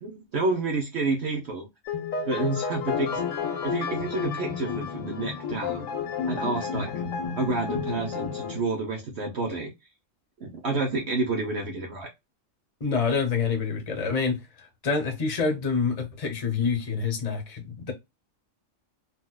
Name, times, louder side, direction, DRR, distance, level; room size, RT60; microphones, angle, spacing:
voice 1, 0.0-1.7 2.3-3.2 3.6-5.9 6.3-7.0 7.4-9.7 10.4-12.1, right 3 dB, 60° right, 1.0 m, -29 dB
sound 1, 1.9-8.6, left 6 dB, 80° left, 1.2 m, -31 dB
voice 2, 12.8-17.9, left 5 dB, 30° left, 0.8 m, -27 dB
4.1 x 2.3 x 2.2 m
omnidirectional pair, 1.4 m